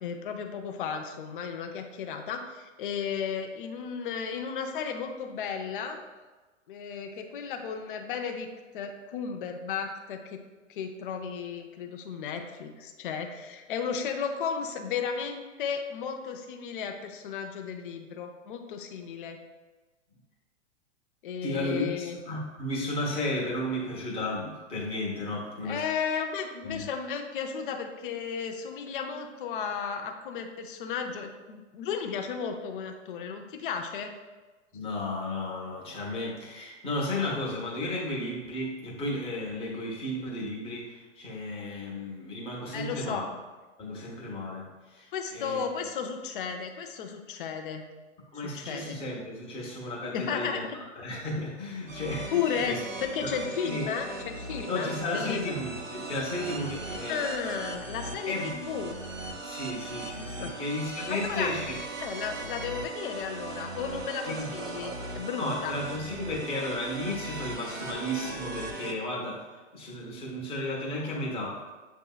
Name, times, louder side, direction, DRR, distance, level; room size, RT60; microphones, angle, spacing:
voice 1, 0.0-6.0 6.7-10.4 10.7-19.4 21.2-22.2 25.6-34.1 42.7-43.3 45.1-47.9 48.3-49.0 50.1-50.8 52.3-55.6 57.1-59.0 60.4-60.5 61.1-61.5 62.0-65.7, left 6 dB, 45° left, 4 dB, 0.5 m, -34 dB
voice 2, 21.4-25.8 26.6-26.9 34.7-43.3 43.8-45.6 48.3-50.6 51.0-52.8 53.2-53.3 53.6-53.8 54.7-57.2 58.3-58.5 59.4-61.7 64.2-64.5 65.4-71.6, left 1 dB, 15° left, -4 dB, 0.9 m, -34 dB
sound 1, 51.9-68.9, right 2 dB, 90° right, 0.8 m, -38 dB
7.4 x 2.7 x 2.3 m, 1.2 s
figure-of-eight pair, 110°, 38 cm